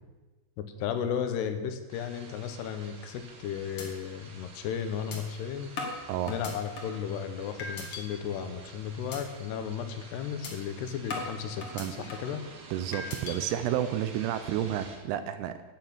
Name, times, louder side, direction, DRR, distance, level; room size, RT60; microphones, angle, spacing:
voice 1, 0.6-5.7 6.3-12.4, left 8 dB, 75° left, 8 dB, 3.0 m, -34 dB
sound 1, 1.9-15.0, right 4 dB, 50° right, 2.8 m, -50 dB
sound 2, 3.1-3.4 3.8-3.9 4.3-4.4 5.1-5.2 5.8-7.0 7.6-8.0 8.5-8.7 9.1-9.2 9.6-9.8 10.4-10.5 11.1-12.4 12.9-13.4, left 3 dB, 50° left, 1.8 m, -38 dB
voice 2, 11.7-12.0 12.7-15.6, right 11 dB, 80° right, 11 dB, 2.5 m, -31 dB
12.0 x 9.0 x 7.3 m, 1.2 s
omnidirectional pair, 5.0 m